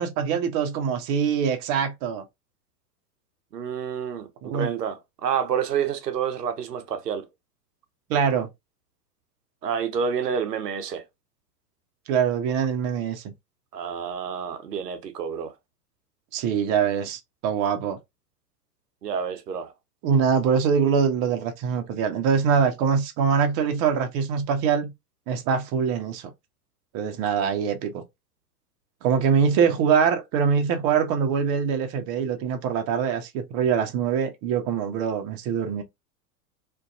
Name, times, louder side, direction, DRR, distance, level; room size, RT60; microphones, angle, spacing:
voice 1, 0.0-2.2 4.4-4.7 8.1-8.5 12.1-13.2 16.3-18.0 20.0-24.9 25.3-26.2 26.9-28.0 29.0-35.8, right 7 dB, 30° right, 0.6 m, -23 dB
voice 2, 3.5-7.3 9.6-11.0 13.7-15.5 19.0-19.7, right 7 dB, 80° right, 0.7 m, -29 dB
2.5 x 2.2 x 2.5 m
figure-of-eight pair, 95°, 47 cm